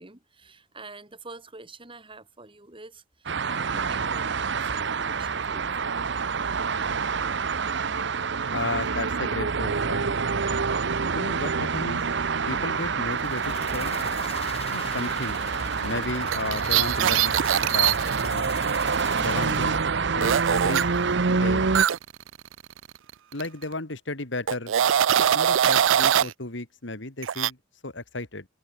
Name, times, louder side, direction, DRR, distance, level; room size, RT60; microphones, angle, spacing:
voice 1, 0.0-6.0, right 3 dB, 25° right, 3.4 m, -46 dB
sound 1, 3.3-21.9, right 5 dB, 65° right, 0.9 m, -27 dB
voice 2, 8.5-10.2 11.1-12.1 12.5-14.0 14.7-15.4 15.8-18.6 19.2-19.8 20.1-20.9 21.3-21.7 23.3-24.7 25.3-27.6 27.8-28.5, left 2 dB, 65° left, 2.5 m, -33 dB
sound 2, 13.1-19.9, left 5 dB, 30° left, 4.8 m, -42 dB
sound 3, 16.3-18.3 20.2-20.8 21.7-23.1 23.4-23.6 24.5-26.3 27.2-27.5, right 10 dB, 80° right, 0.4 m, -22 dB
head